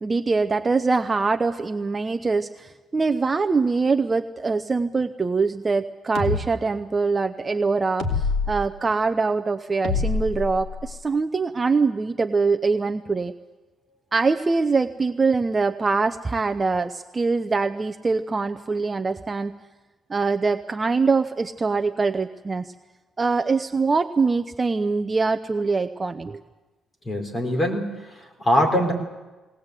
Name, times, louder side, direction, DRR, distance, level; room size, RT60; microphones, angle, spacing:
voice 1, 0.0-13.3 14.1-19.6 20.1-22.7 23.2-26.4, right 4 dB, 25° right, 9 dB, 0.6 m, -23 dB
sound 1, 6.2-6.4 8.0-8.5 9.8-11.0, left 4 dB, 70° left, 2.9 m, -25 dB
voice 2, 27.0-28.9, equal, 20° left, 2 dB, 4.4 m, -23 dB
21.0 x 19.0 x 8.2 m, 1.2 s
cardioid pair, 130°, 0 cm